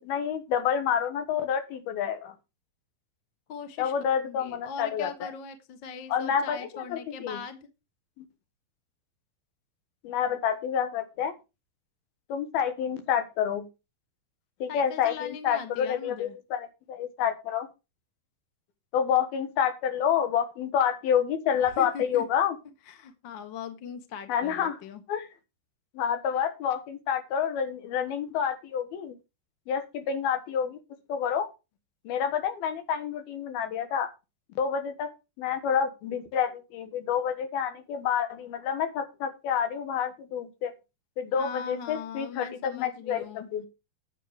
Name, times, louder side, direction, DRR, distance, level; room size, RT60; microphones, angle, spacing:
voice 1, 0.0-2.3 3.8-5.3 6.1-7.4 8.2-8.3 10.0-11.3 12.3-13.7 14.6-17.7 18.9-22.6 24.3-24.8 25.1-25.3 25.9-29.2 29.7-30.8 31.1-31.5 32.0-34.1 34.6-35.1 35.4-40.7 41.2-43.7, left 8 dB, 85° left, 8 dB, 3.4 m, -28 dB
voice 2, 3.5-7.6 14.7-16.4 21.8-22.2 22.9-25.0 41.3-43.5, left 6 dB, 50° left, 7 dB, 1.5 m, -40 dB
10.0 x 7.9 x 5.0 m, 0.27 s
omnidirectional pair, 4.3 m